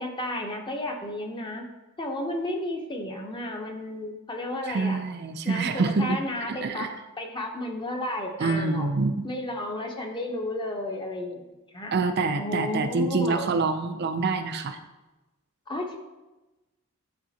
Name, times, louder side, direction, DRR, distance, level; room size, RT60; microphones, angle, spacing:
voice 1, 0.0-1.7 2.0-5.0 5.4-6.9 7.2-8.9 9.2-11.4 11.7-12.0 12.4-13.5 15.7-16.0, left 1 dB, 20° left, 2 dB, 0.8 m, -32 dB
voice 2, 4.7-6.2 6.5-6.9 8.4-9.3 11.9-14.8, right 4 dB, 50° right, 7 dB, 0.4 m, -26 dB
10.0 x 3.6 x 2.8 m, 1.1 s
head